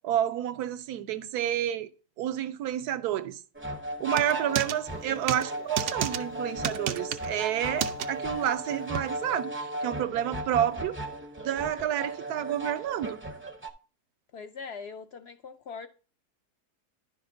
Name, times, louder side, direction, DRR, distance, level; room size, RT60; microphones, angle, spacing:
voice 1, 0.0-1.9 2.2-3.4 4.0-11.0 11.4-13.2, right 11 dB, 85° right, 1.2 m, -30 dB
sound 1, 3.5-13.7, right 1 dB, 15° right, 0.4 m, -36 dB
voice 2, 4.1-4.6 14.3-15.9, left 5 dB, 75° left, 0.5 m, -41 dB
sound 2, 4.1-4.8 5.3-5.5 5.8-6.2 6.6-7.3 7.8-8.1 9.0-9.1, right 9 dB, 65° right, 0.7 m, -30 dB
10.5 x 6.5 x 2.6 m
omnidirectional pair, 1.7 m